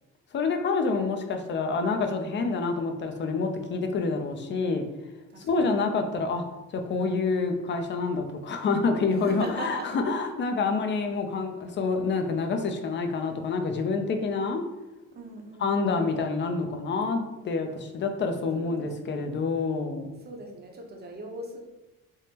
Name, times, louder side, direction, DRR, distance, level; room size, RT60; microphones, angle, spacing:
voice 1, 0.3-4.8 5.4-6.4 6.7-14.6 15.6-20.1, left 4 dB, 40° left, 5 dB, 0.4 m, -27 dB
voice 2, 5.3-5.7 9.1-10.2 15.1-16.0 18.5-19.5 20.3-21.6, right 2 dB, 35° right, 1 dB, 0.7 m, -40 dB
3.5 x 2.0 x 2.8 m, 1.0 s
cardioid pair, 90°, 30 cm